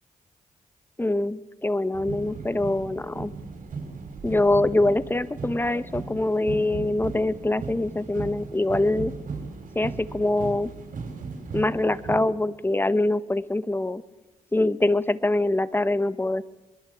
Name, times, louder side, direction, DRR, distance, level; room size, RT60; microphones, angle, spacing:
voice 1, 1.0-3.3 4.2-9.1 9.7-10.7 11.5-14.0 14.5-16.4, left 2 dB, 15° left, 14 dB, 1.4 m, -24 dB
sound 1, 1.9-12.2, right 4 dB, 65° right, 6.3 m, -37 dB
24.0 x 22.5 x 8.7 m, 1.0 s
cardioid pair, 70°, 14 cm